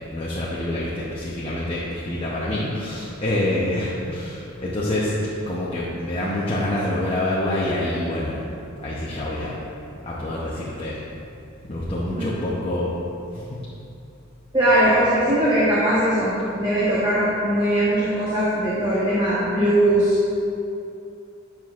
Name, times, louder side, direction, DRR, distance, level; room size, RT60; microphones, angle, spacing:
voice 1, 0.1-5.1 5.4-8.4 8.8-9.6 10.0-11.0 11.6-12.9 13.3-13.4, left 1 dB, 30° left, -6 dB, 0.7 m, -26 dB
voice 2, 14.5-20.2, right 1 dB, 20° right, -9 dB, 1.1 m, -20 dB
9.2 x 6.0 x 2.5 m, 2.7 s
head